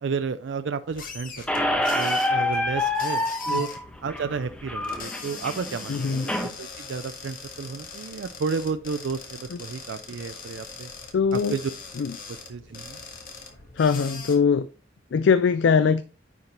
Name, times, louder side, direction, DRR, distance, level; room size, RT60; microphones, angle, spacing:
voice 1, 0.0-3.7 4.0-6.3 6.6-10.9 11.3-11.7 12.3-13.0, right 5 dB, 70° right, 0.4 m, -32 dB
sound 1, 0.9-14.4, left 4 dB, 45° left, 1.5 m, -41 dB
Squeak, 1.5-6.5, left 1 dB, 5° left, 0.9 m, -27 dB
voice 2, 5.9-6.3 9.5-9.6 11.1-11.6 12.0-12.1 13.8-14.7 15.1-16.0, left 5 dB, 70° left, 0.4 m, -21 dB
9.6 x 5.2 x 3.0 m
head